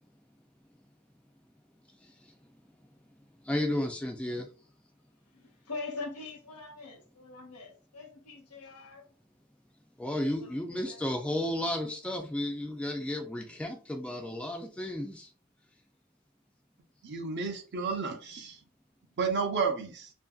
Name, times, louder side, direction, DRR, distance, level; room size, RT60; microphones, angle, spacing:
voice 1, 1.9-2.9 3.4-4.5 10.0-15.3, left 1 dB, 5° left, 0.3 m, -33 dB
voice 2, 5.3-9.1 10.4-11.0, left 3 dB, 80° left, 0.8 m, -43 dB
voice 3, 17.0-18.6 19.2-20.1, right 5 dB, 50° right, 0.6 m, -31 dB
2.7 x 2.6 x 2.3 m
head